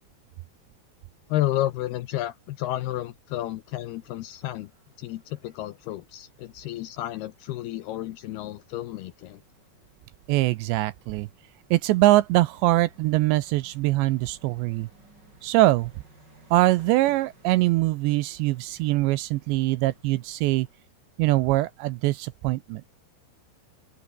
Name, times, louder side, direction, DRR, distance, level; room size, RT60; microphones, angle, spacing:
voice 1, 1.3-4.7 5.0-9.4, left 14 dB, 75° left, 2.4 m, -31 dB
sound 1, 3.6-20.8, right 2 dB, 20° right, 7.6 m, -59 dB
voice 2, 10.3-11.3 11.7-14.9 15.4-15.9 16.5-20.7 21.2-22.8, right 18 dB, 85° right, 2.7 m, -23 dB
open air
omnidirectional pair, 5.6 m